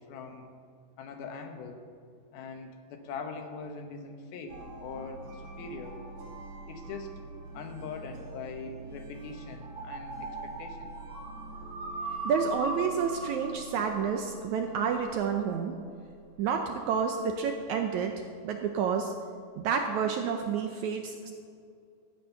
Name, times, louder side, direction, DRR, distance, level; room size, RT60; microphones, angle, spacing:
voice 1, 0.1-0.5 1.0-1.8 2.3-6.0 6.7-7.1 7.5-10.9, left 4 dB, 90° left, 4 dB, 3.1 m, -42 dB
sound 1, 4.5-15.5, right 2 dB, 70° right, 5.1 m, -41 dB
voice 2, 12.2-15.8 16.4-19.1 19.6-21.3, right 6 dB, 85° right, 4 dB, 1.6 m, -29 dB
15.0 x 8.8 x 5.8 m, 2.3 s
omnidirectional pair, 4.2 m